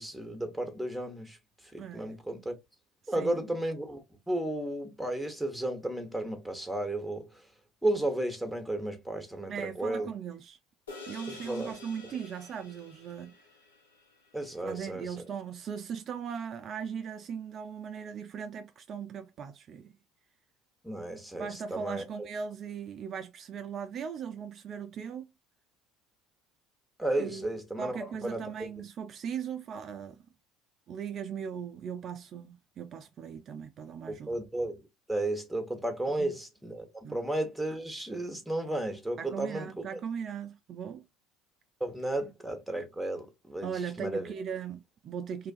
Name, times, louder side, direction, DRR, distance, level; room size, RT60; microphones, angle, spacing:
voice 1, 0.0-1.4 1.7-2.5 3.1-4.0 4.3-7.4 7.8-10.1 11.3-11.7 14.3-15.1 20.8-22.0 27.0-28.4 34.1-34.8 35.1-40.0 41.8-44.3, right 1 dB, ahead, 0.9 m, -33 dB
voice 2, 1.8-2.2 3.0-3.4 9.5-10.6 11.1-13.4 14.6-19.9 21.3-25.3 27.2-27.4 27.8-30.2 30.9-34.3 36.2-36.3 37.0-37.2 39.2-41.0 43.6-45.5, right 7 dB, 45° right, 0.3 m, -39 dB
sound 1, 10.9-15.4, left 3 dB, 90° left, 0.7 m, -50 dB
2.6 x 2.3 x 2.3 m
hypercardioid pair, 70°, 0 cm